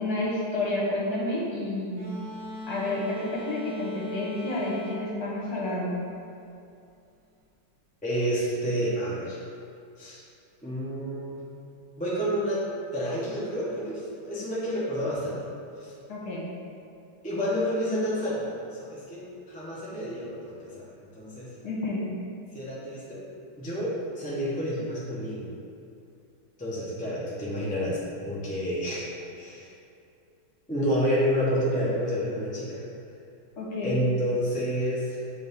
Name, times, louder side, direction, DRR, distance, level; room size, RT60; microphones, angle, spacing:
voice 1, 0.0-2.1 2.7-6.0 16.1-16.5 21.6-22.1 33.6-34.0, left 2 dB, 50° left, -6 dB, 1.6 m, -30 dB
sound 1, 2.0-6.4, left 1 dB, 55° right, 1.2 m, -38 dB
voice 2, 8.0-9.4 10.0-10.2 10.6-11.4 12.0-12.6 12.9-15.4 15.8-15.9 17.2-21.5 22.5-23.2 23.6-25.5 26.6-29.1 29.4-29.7 30.7-32.8 33.8-35.2, equal, 10° left, -7 dB, 0.5 m, -29 dB
8.3 x 3.4 x 3.5 m, 2.5 s
omnidirectional pair, 2.2 m